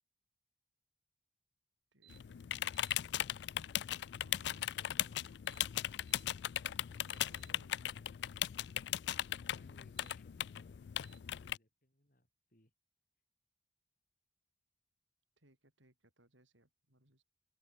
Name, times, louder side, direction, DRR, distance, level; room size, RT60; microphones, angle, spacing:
voice 1, 1.9-2.5 4.2-5.3 7.0-8.2 15.4-17.2, right 1 dB, 85° right, 7.0 m, -68 dB
sound 1, 2.0-2.2 2.6-3.0 5.3-6.3 6.8-7.5 9.8-10.2 11.0-11.2, right 15 dB, 65° right, 4.4 m, -65 dB
sound 2, 2.1-11.6, left 12 dB, 65° left, 0.3 m, -38 dB
voice 2, 4.4-5.2 9.5-10.9 11.2-12.7, left 1 dB, 45° left, 5.8 m, -65 dB
open air
head